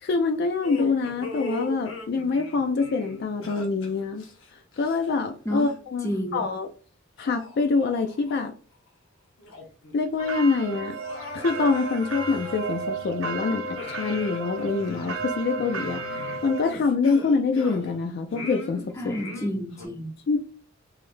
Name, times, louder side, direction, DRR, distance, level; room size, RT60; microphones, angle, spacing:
voice 1, 0.0-4.2 4.8-6.7 7.2-8.5 9.9-11.0 11.3-16.0 16.4-19.2 20.3-20.4, left 4 dB, 50° left, 0.3 m, -25 dB
sound 1, 0.6-5.3 5.6-5.8 6.5-6.6 7.2-8.5 8.9-9.0 9.4-10.0 10.2-10.3 10.8-13.3 13.7-18.0 18.3-19.9, left 2 dB, 70° left, 0.9 m, -39 dB
voice 2, 6.0-6.4 18.9-20.2, equal, 15° left, 0.7 m, -30 dB
sound 2, 10.2-16.7, right 3 dB, 75° right, 0.6 m, -33 dB
3.7 x 3.2 x 2.5 m
head